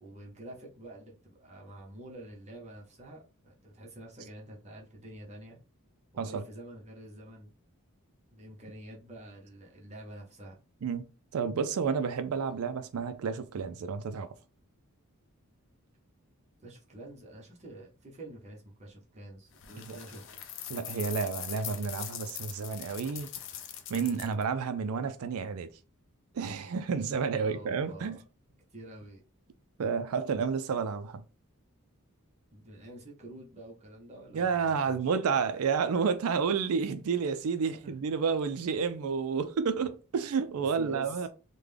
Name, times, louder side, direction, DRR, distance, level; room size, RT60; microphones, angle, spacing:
voice 1, 0.0-5.6 6.1-7.5 8.3-10.6 16.6-20.3 27.3-28.2 28.7-29.2 32.5-35.0 37.8-37.9 40.5-41.3, right 1 dB, 30° right, 0.9 m, -47 dB
voice 2, 11.3-14.3 19.8-20.0 20.7-23.3 23.9-25.7 26.3-28.2 29.8-31.2 34.3-41.3, right 5 dB, 75° right, 0.4 m, -30 dB
sound 1, 19.6-24.4, left 10 dB, 55° left, 0.5 m, -42 dB
3.6 x 2.2 x 3.3 m
head